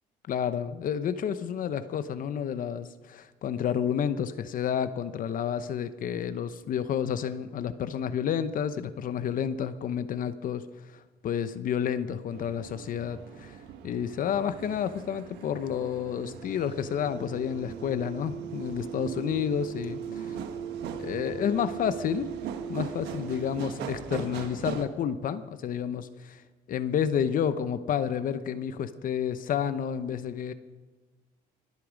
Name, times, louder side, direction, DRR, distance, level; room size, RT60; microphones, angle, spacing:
voice 1, 0.3-10.6 10.9-13.6 13.8-20.4 21.0-22.3 22.7-26.4 26.7-30.5, left 8 dB, 55° left, 12 dB, 0.8 m, -30 dB
sound 1, 12.3-24.8, right 8 dB, 80° right, 1.3 m, -39 dB
23.0 x 8.4 x 5.1 m, 1.2 s
cardioid pair, 110°, 17 cm